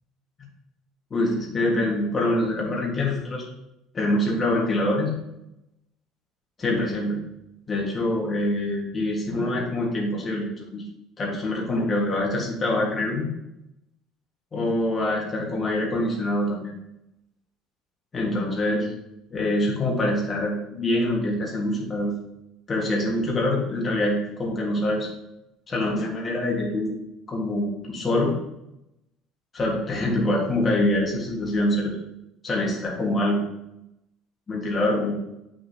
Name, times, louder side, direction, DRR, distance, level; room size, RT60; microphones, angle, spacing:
voice 1, 1.1-3.5 3.9-5.1 6.6-7.2 7.7-10.8 11.2-13.3 14.5-16.8 18.1-18.9 19.3-22.1 22.7-25.1 25.7-26.9 27.3-28.3 29.5-31.9 32.4-33.4 34.5-35.1, left 1 dB, 25° left, -3 dB, 1.6 m, -25 dB
7.3 x 6.3 x 2.8 m, 0.86 s
cardioid pair, 160°, 0 cm